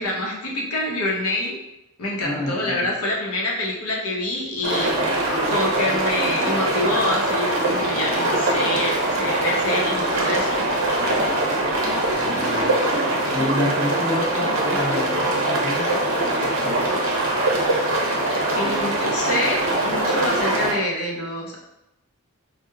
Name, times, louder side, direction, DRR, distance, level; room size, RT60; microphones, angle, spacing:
voice 1, 0.0-1.6 2.0-4.9 5.5-10.6 14.4-14.8 18.6-21.6, left 1 dB, 85° left, -3 dB, 0.7 m, -26 dB
voice 2, 2.2-2.9 12.2-12.7 13.3-16.0 16.4-17.0, left 1 dB, 5° right, -10 dB, 1.1 m, -29 dB
sound 1, 4.6-20.7, right 1 dB, 60° right, 0.6 m, -22 dB
4.5 x 2.1 x 2.3 m, 0.87 s
head